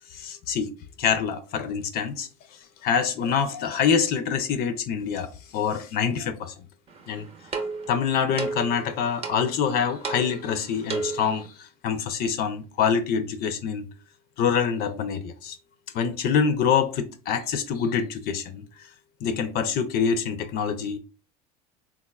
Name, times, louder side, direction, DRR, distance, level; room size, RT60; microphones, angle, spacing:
voice 1, 0.1-0.7 1.0-2.3 2.8-6.5 7.1-7.3 7.9-13.9 14.4-15.6 15.9-18.9 19.2-21.0, left 7 dB, 50° left, 0.4 m, -25 dB
sound 1, 6.9-11.5, right 4 dB, 30° right, 0.7 m, -34 dB
3.5 x 2.3 x 2.2 m
supercardioid pair, 100°, 20 cm